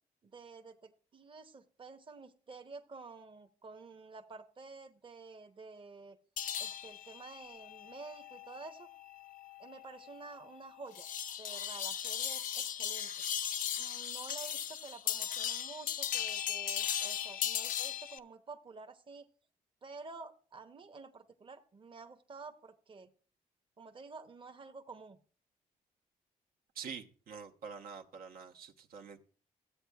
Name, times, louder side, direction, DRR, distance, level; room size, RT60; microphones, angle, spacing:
voice 1, 0.2-6.2 6.6-8.9 9.6-11.1 11.4-13.1 13.8-19.3 19.8-23.1 23.8-25.2, right 4 dB, 35° right, 6 dB, 0.9 m, -50 dB
sound 1, 6.4-18.2, left 9 dB, 65° left, 0.4 m, -38 dB
voice 2, 26.7-29.2, right 6 dB, 75° right, 4 dB, 1.0 m, -46 dB
14.5 x 8.2 x 2.3 m, 0.41 s
cardioid pair, 85°, 15 cm